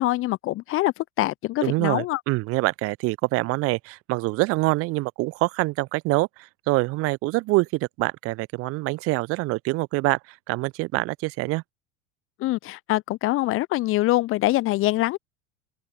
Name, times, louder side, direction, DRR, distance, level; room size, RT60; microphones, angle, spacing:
voice 1, 0.0-2.2 12.4-15.2, left 17 dB, 30° left, 0.9 m, -24 dB
voice 2, 1.6-10.2 10.5-11.6, right 22 dB, 35° right, 0.7 m, -25 dB
open air
figure-of-eight pair, 85°, 40 cm